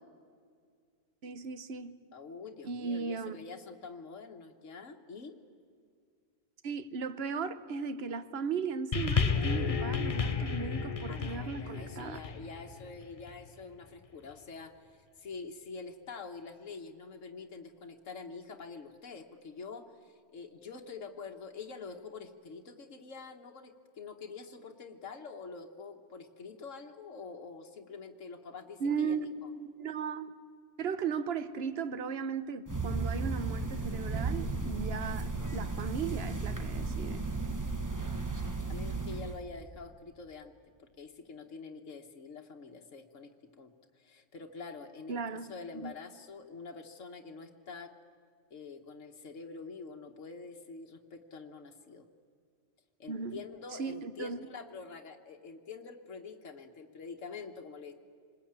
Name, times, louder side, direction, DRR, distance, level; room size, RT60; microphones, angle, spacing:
voice 1, 1.2-2.0 2.6-3.4 6.6-12.2 28.8-30.3 30.8-37.2 45.1-45.9 53.1-53.4 53.8-54.5, right 5 dB, 55° right, 1.2 m, -36 dB
voice 2, 2.1-5.3 11.1-29.5 38.7-40.5 40.8-43.3 43.6-47.9 48.5-52.0 53.0-57.9, left 4 dB, 80° left, 1.7 m, -46 dB
sound 1, 8.9-13.5 14.3-14.4, left 5 dB, 35° left, 0.8 m, -32 dB
sound 2, 32.7-39.4, right 3 dB, 15° right, 1.1 m, -34 dB
27.0 x 20.5 x 8.8 m
omnidirectional pair, 1.3 m